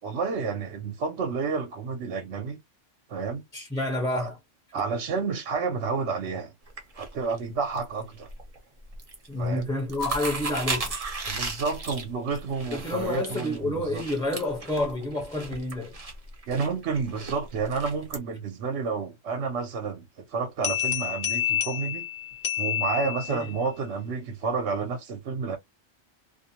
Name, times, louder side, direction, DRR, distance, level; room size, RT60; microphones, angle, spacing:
voice 1, 0.0-2.6 3.1-3.4 4.1-4.3 4.7-6.5 6.9-8.3 9.4-9.7 11.3-14.0 16.5-22.1 22.6-25.6, right 5 dB, 65° right, 0.9 m, -30 dB
voice 2, 3.5-4.4 9.3-10.9 12.7-16.0 23.3-23.4, left 1 dB, 5° left, 0.7 m, -29 dB
sound 1, 6.7-7.9 8.2-8.6 8.9-9.3 9.6-18.2, right 3 dB, 35° right, 0.7 m, -35 dB
sound 2, 20.6-23.6, left 11 dB, 55° left, 1.1 m, -29 dB
2.5 x 2.1 x 2.8 m
omnidirectional pair, 1.3 m